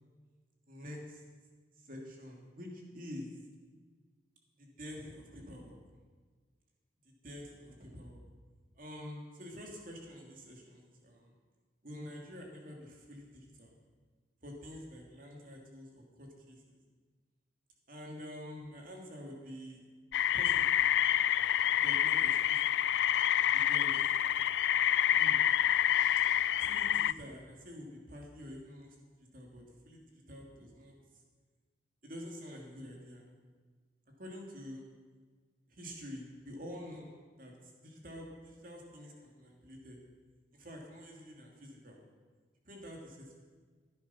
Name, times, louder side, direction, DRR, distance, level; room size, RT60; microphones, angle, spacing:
voice 1, 0.7-1.2 1.8-3.3 4.6-5.8 7.0-8.2 8.8-11.3 11.8-13.7 14.4-16.8 17.9-19.8 20.3-20.8 21.7-22.6 23.5-24.1 25.1-25.5 26.6-30.0 30.3-30.9 32.0-33.2 34.2-34.8 35.7-37.1 37.4-37.5 37.8-40.0 40.5-42.0 42.6-43.4, equal, 50° right, 0 dB, 2.7 m, -47 dB
sound 1, 20.1-27.1, left 11 dB, 80° left, 0.3 m, -28 dB
16.0 x 9.7 x 5.7 m, 1.5 s
head